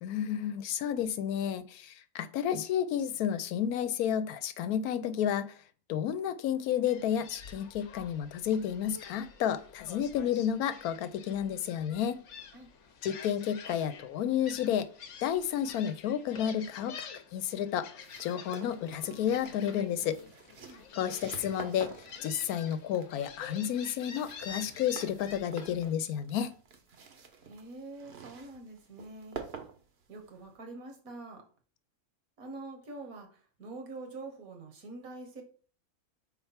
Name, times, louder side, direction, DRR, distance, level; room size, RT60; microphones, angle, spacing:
voice 1, 0.0-5.5 5.9-12.2 13.0-14.9 15.2-20.2 20.9-21.9 22.2-26.5, left 9 dB, 80° left, 12 dB, 1.1 m, -31 dB
Gull seagull, 6.9-25.9, left 6 dB, 60° left, 1.0 m, -49 dB
sound 1, 18.0-30.5, right 5 dB, 50° right, 1.0 m, -49 dB
voice 2, 20.6-21.1 27.4-29.4 30.1-31.4 32.4-35.4, right 2 dB, 70° right, 4 dB, 1.7 m, -45 dB
4.5 x 4.3 x 5.7 m, 0.42 s
omnidirectional pair, 1.5 m